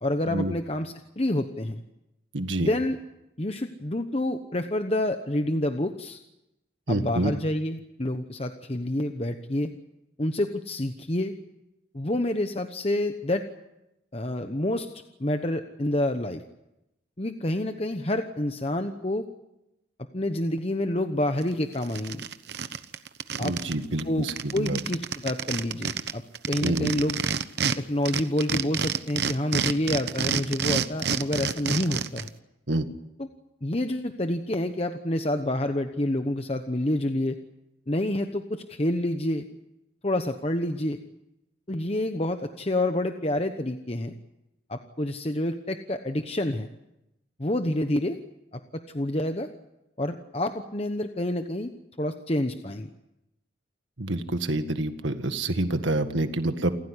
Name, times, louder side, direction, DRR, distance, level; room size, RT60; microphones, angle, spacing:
voice 1, 0.0-1.8 2.6-3.0 3.4-6.2 6.9-9.7 10.2-11.3 11.9-13.4 14.1-14.9 15.2-16.4 17.2-19.3 20.1-22.2 23.4-23.5 24.0-24.3 24.5-27.2 27.8-32.3 33.2-33.3 33.6-37.4 37.9-39.5 40.0-41.0 41.7-44.1 44.7-46.7 47.4-48.2 48.5-49.5 50.0-51.7 52.0-52.9, left 1 dB, 30° left, 7 dB, 1.0 m, -28 dB
voice 2, 2.3-2.7 6.9-7.3 23.4-24.8 26.6-26.9 32.7-32.9 54.0-56.7, right 1 dB, 85° right, 8 dB, 1.8 m, -27 dB
sound 1, 21.4-21.5 21.8-23.7 24.0-24.1 24.3-27.8 28.1-32.3, right 6 dB, 60° right, 1.0 m, -28 dB
29.0 x 15.0 x 9.9 m, 0.90 s
head